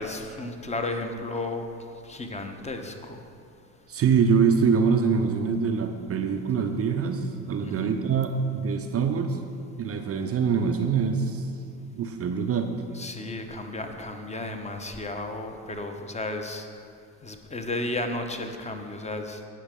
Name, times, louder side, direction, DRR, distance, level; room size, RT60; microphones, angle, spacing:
voice 1, 0.0-1.6 2.0-3.2 7.6-8.0 12.9-16.7 17.2-19.4, left 2 dB, 15° left, 5 dB, 1.1 m, -33 dB
voice 2, 3.9-9.5 9.8-11.5 12.0-12.7, right 6 dB, 30° right, 6 dB, 0.7 m, -24 dB
17.5 x 6.4 x 3.7 m, 2.5 s
figure-of-eight pair, 65°, 49 cm